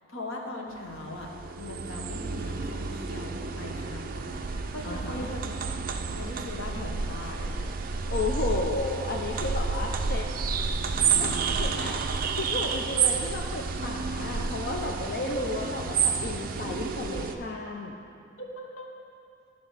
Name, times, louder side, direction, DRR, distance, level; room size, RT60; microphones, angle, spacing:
voice 1, 0.1-5.5 6.1-7.5 15.2-15.3 18.4-18.9, left 1 dB, 80° left, 0 dB, 1.2 m, -40 dB
sound 1, 0.9-17.3, right 5 dB, 45° right, 0.4 m, -30 dB
voice 2, 4.8-5.3 8.1-10.3 11.1-12.0 12.4-18.0, left 2 dB, 50° left, 0 dB, 0.5 m, -33 dB
11.0 x 4.0 x 6.4 m, 2.5 s
head